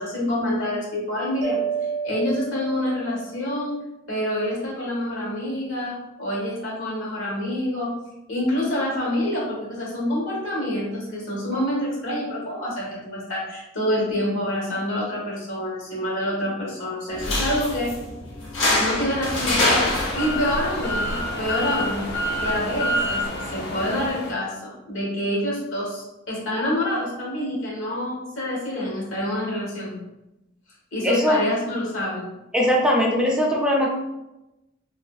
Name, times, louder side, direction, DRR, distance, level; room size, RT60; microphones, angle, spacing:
voice 1, 0.0-1.6 2.0-3.8 4.1-8.0 8.3-18.0 18.8-23.2 23.5-30.0 30.9-32.3, left 1 dB, 90° left, -4 dB, 1.2 m, -27 dB
Mallet percussion, 1.4-3.5, right 6 dB, 80° right, 0.4 m, -30 dB
sound 1, 17.1-24.1, left 2 dB, 70° left, 0.8 m, -27 dB
sound 2, 19.1-24.3, equal, 55° left, 0.5 m, -28 dB
voice 2, 31.0-31.4 32.5-33.9, equal, 5° right, -3 dB, 0.4 m, -20 dB
2.8 x 2.5 x 2.3 m, 0.94 s
head